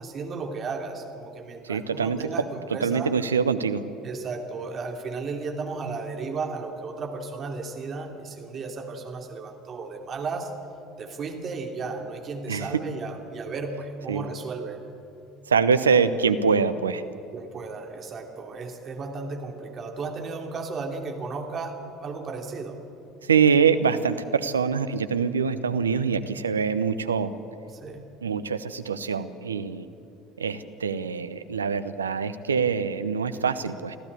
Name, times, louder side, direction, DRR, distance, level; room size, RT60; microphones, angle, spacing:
voice 1, 0.0-3.1 4.0-10.5 11.0-14.8 17.3-22.8 27.8-28.1, right 4 dB, 40° right, 4 dB, 2.8 m, -34 dB
voice 2, 1.6-2.3 2.7-3.8 12.5-12.7 14.1-14.2 15.5-17.0 23.2-27.3 28.2-29.9 30.4-34.0, right 6 dB, 85° right, 12 dB, 0.9 m, -24 dB
25.0 x 15.0 x 8.5 m, 2.6 s
figure-of-eight pair, 65°, 0 cm